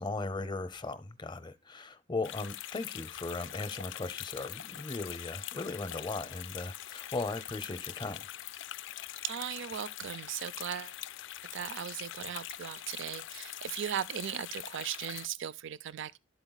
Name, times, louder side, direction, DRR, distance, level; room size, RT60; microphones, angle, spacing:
voice 1, 0.0-8.2, left 3 dB, 25° left, 0.6 m, -37 dB
sound 1, 2.2-15.3, left 13 dB, 60° left, 0.4 m, -43 dB
voice 2, 9.2-10.9 11.5-16.2, right 9 dB, 65° right, 0.4 m, -38 dB
11.5 x 4.3 x 3.9 m
head